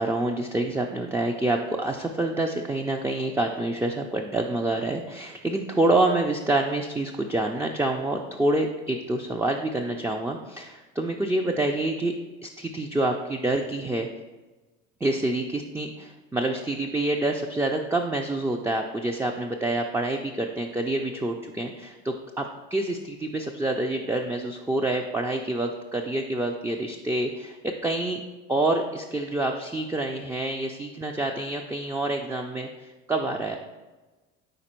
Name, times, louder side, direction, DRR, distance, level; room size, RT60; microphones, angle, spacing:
voice 1, 0.0-12.1 12.4-14.1 15.0-22.4 22.7-28.2 28.5-33.6, right 2 dB, 10° right, 3 dB, 0.3 m, -27 dB
5.1 x 4.4 x 4.3 m, 1.2 s
supercardioid pair, 90°, 31 cm